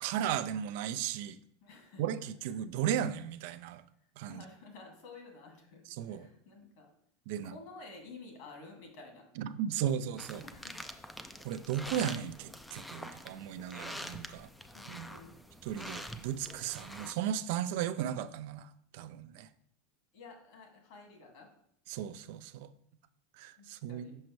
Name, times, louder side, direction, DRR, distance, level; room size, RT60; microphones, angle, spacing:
voice 1, 0.0-1.4 2.0-3.8 4.2-4.4 5.9-6.3 7.3-7.5 9.4-10.4 11.4-14.5 14.9-15.1 15.6-18.6 18.9-19.5 21.9-22.7 23.4-24.2, right 10 dB, 65° right, 12 dB, 0.4 m, -35 dB
voice 2, 1.6-2.0 4.3-5.8 6.1-6.9 7.4-9.2 10.4-10.8 13.0-13.1 13.7-14.0 14.7-15.3 20.1-21.5 23.6-24.1, left 3 dB, 65° left, 1 dB, 2.0 m, -52 dB
sound 1, 10.2-17.1, left 1 dB, 5° left, 0.4 m, -46 dB
6.3 x 5.2 x 3.0 m, 0.68 s
supercardioid pair, 125°, 0 cm